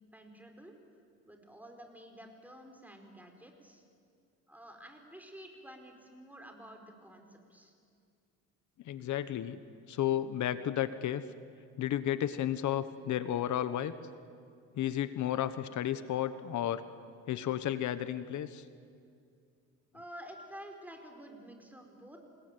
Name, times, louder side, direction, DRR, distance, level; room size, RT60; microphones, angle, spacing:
voice 1, 0.1-0.8 1.2-3.8 4.5-7.7 19.9-22.2, equal, 5° right, 4 dB, 5.0 m, -50 dB
voice 2, 8.8-9.6 9.9-11.2 11.8-13.9 14.7-16.8 17.3-18.6, left 11 dB, 75° left, 13 dB, 1.1 m, -32 dB
28.0 x 20.0 x 9.3 m, 2.3 s
cardioid pair, 90°, 30 cm